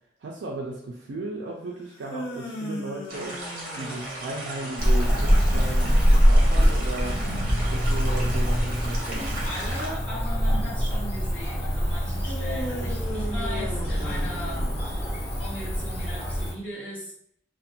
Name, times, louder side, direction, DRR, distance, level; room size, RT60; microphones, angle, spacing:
voice 1, 0.2-3.4 3.7-7.2 7.6-9.2, right 2 dB, 70° right, -1 dB, 0.3 m, -36 dB
sound 1, 1.8-5.1 12.2-15.2, equal, 65° left, 0.7 m, -37 dB
sound 2, 3.1-9.9, right 1 dB, 50° right, 0.8 m, -36 dB
Cricket / Motor vehicle (road), 4.8-16.5, equal, 35° left, 0.8 m, -24 dB
voice 2, 9.1-14.8 15.4-17.1, equal, 10° left, -9 dB, 1.0 m, -38 dB
2.5 x 2.1 x 2.7 m, 0.66 s
head